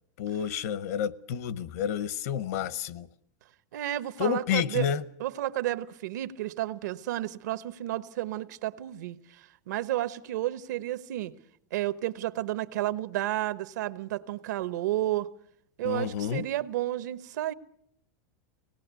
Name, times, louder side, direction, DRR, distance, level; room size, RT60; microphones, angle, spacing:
voice 1, 0.2-3.1 4.2-5.0 15.8-16.5, left 9 dB, 60° left, 0.8 m, -30 dB
voice 2, 3.7-4.9 5.2-11.3 11.7-15.3 15.8-17.5, right 14 dB, 75° right, 1.0 m, -31 dB
24.5 x 18.5 x 8.2 m
supercardioid pair, 175°, 9 cm